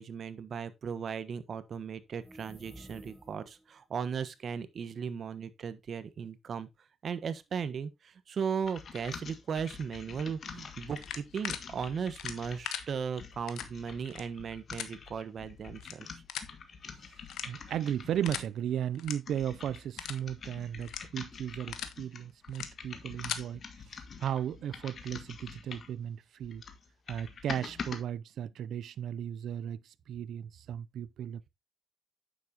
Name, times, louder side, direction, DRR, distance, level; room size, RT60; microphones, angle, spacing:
voice 1, 0.0-6.7 7.0-16.1, right 6 dB, 55° right, 1.2 m, -37 dB
sound 1, 2.1-3.7, right 1 dB, 5° right, 1.1 m, -51 dB
sound 2, 8.6-18.5 19.0-26.0 26.4-28.0, left 6 dB, 50° left, 1.7 m, -46 dB
sound 3, 11.0-11.6 12.1-12.8 13.5-13.7 14.0-14.2 14.7-14.9 15.8-15.9 16.3-16.5 17.3-17.7 18.2-18.5 18.9-19.1 19.5-19.6 20.0-20.2 20.8-21.0 21.5-21.9 22.5-22.7 23.0-23.4, left 10 dB, 80° left, 1.2 m, -38 dB
voice 2, 17.5-23.6 24.2-26.6 27.1-31.5, right 10 dB, 70° right, 0.4 m, -35 dB
9.3 x 7.3 x 2.9 m
cardioid pair, 90°, 0 cm